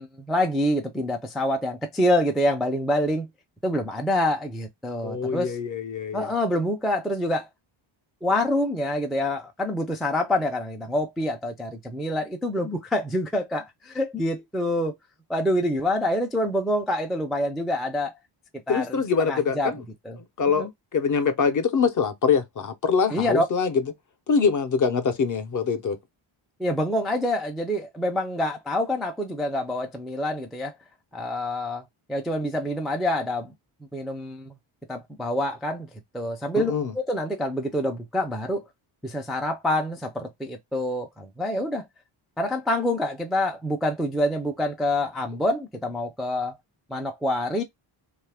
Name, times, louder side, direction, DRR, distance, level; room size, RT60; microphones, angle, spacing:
voice 1, 0.0-3.3 3.6-5.6 6.1-7.5 8.2-14.9 15.3-18.2 18.7-19.8 20.1-20.2 20.5-20.7 23.1-23.5 26.6-30.7 31.1-33.5 33.9-34.5 34.9-35.9 36.1-38.6 39.0-41.9 42.4-46.6 46.9-47.6, left 1 dB, ahead, 0.3 m, -26 dB
voice 2, 5.0-6.3 18.7-19.8 20.4-23.7 24.3-26.0 36.6-36.9, left 5 dB, 40° left, 0.6 m, -24 dB
2.6 x 2.4 x 3.3 m
wide cardioid pair, 130°, 49 cm